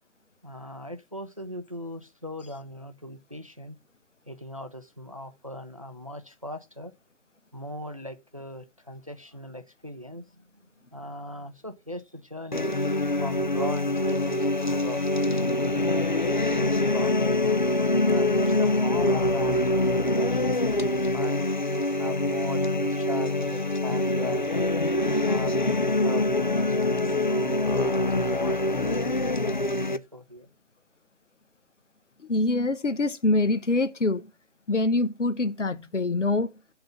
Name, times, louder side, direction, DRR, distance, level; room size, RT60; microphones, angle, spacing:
voice 1, 0.4-3.8 4.3-6.9 7.5-12.7 13.2-17.4 18.1-21.5 22.0-24.6 25.2-30.5, left 1 dB, 30° right, 0.4 m, -40 dB
sound 1, 12.5-30.0, left 2 dB, 40° left, 0.4 m, -25 dB
voice 2, 32.3-34.3 34.7-36.5, left 2 dB, 75° left, 1.0 m, -25 dB
7.6 x 3.8 x 5.8 m
figure-of-eight pair, 150°, 36 cm